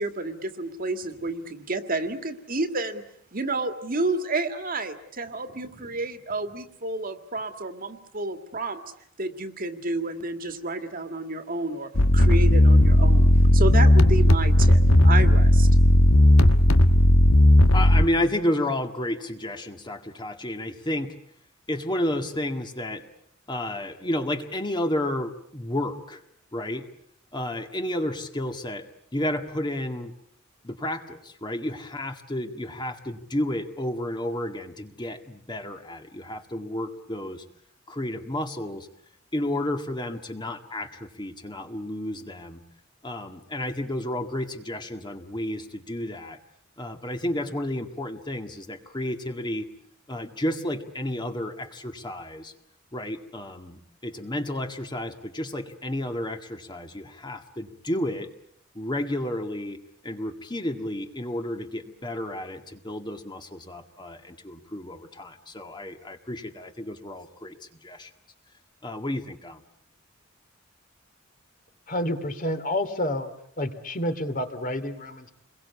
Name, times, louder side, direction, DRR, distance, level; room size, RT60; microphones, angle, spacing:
voice 1, 0.0-3.0 3.3-8.8 9.2-15.7, right 2 dB, 45° right, 8 dB, 2.1 m, -30 dB
sound 1, 12.0-18.1, left 1 dB, 75° left, 1.5 m, -16 dB
voice 2, 17.7-21.1 21.7-23.1 23.5-26.2 26.5-26.8 27.3-28.9 29.1-30.1 30.6-37.4 37.9-38.9 39.3-42.6 43.0-46.4 46.8-49.6 50.1-52.5 52.9-58.3 58.8-59.8 60.0-67.6 67.8-68.1 68.8-69.6, left 1 dB, 20° left, 5 dB, 1.9 m, -31 dB
voice 3, 71.9-73.3 73.6-75.3, left 1 dB, 40° left, 8 dB, 2.7 m, -29 dB
29.0 x 22.0 x 8.4 m, 0.68 s
head